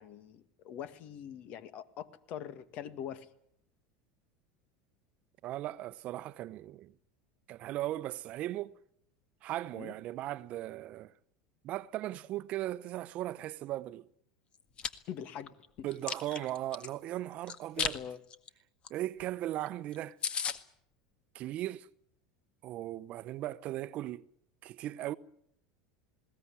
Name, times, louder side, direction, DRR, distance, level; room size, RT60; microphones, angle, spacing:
voice 1, 0.0-3.3 9.7-9.9 15.1-15.9 17.8-18.2, left 9 dB, 55° left, 2.0 m, -43 dB
voice 2, 5.4-6.9 7.5-8.8 9.4-11.1 11.6-14.1 15.8-18.0 18.9-20.2 21.3-21.9 22.6-24.2 24.6-25.1, right 14 dB, 50° right, 0.9 m, -37 dB
Chewing mastication, 14.5-14.9 15.4-16.9 17.5-18.0 18.3-18.5 18.8-18.9 19.2-19.3 19.7-19.8 19.9-20.0 20.2-20.6, left 7 dB, 35° left, 1.8 m, -34 dB
20.5 x 18.0 x 9.9 m
hypercardioid pair, 95°, 3 cm